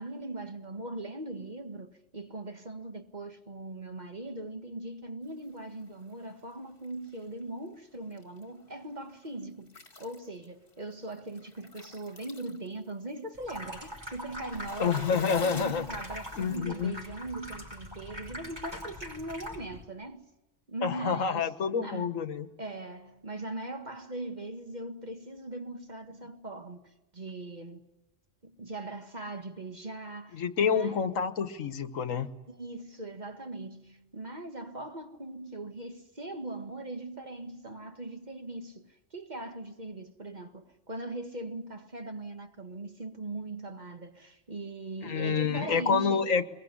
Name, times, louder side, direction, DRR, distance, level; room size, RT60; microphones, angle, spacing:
voice 1, 0.0-20.3 20.7-21.5 21.8-22.1 22.6-27.9 28.4-31.0 32.5-46.3, right 2 dB, 35° right, 1.9 m, -40 dB
sound 1, 5.4-6.5 6.8-7.4 7.9-8.4 8.7-9.3 9.6-16.6, left 3 dB, 45° left, 2.2 m, -49 dB
Water tap faucet / Sink (filling or washing), 13.4-19.8, equal, 20° right, 5.6 m, -42 dB
voice 2, 14.8-15.9 16.4-16.9 20.8-22.5 30.3-32.3 45.0-46.5, left 6 dB, 85° left, 1.6 m, -28 dB
23.5 x 22.0 x 9.8 m
omnidirectional pair, 1.3 m